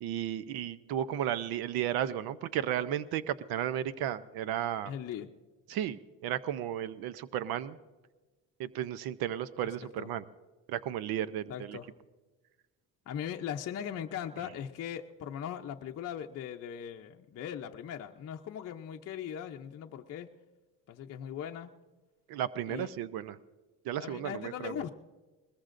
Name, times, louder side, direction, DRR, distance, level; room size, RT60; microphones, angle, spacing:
voice 1, 0.0-4.9 5.7-6.0 6.2-7.8 8.6-10.2 10.7-11.8 22.3-23.4 23.9-24.7, right 11 dB, 90° right, 15 dB, 0.7 m, -34 dB
voice 2, 4.8-5.3 9.6-10.1 11.5-11.9 13.1-20.3 20.9-21.7 22.6-22.9 23.9-24.9, left 9 dB, 45° left, 2 dB, 0.6 m, -39 dB
21.0 x 20.5 x 2.5 m, 1.2 s
cardioid pair, 140°, 35 cm